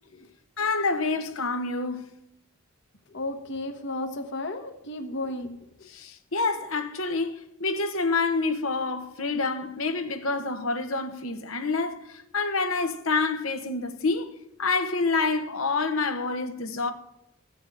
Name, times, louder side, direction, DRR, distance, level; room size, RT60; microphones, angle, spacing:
voice 1, 0.6-2.1 5.9-16.9, left 3 dB, 90° left, 1.3 m, -27 dB
voice 2, 3.1-5.9, left 2 dB, 60° left, 1.2 m, -34 dB
15.0 x 6.6 x 9.0 m
head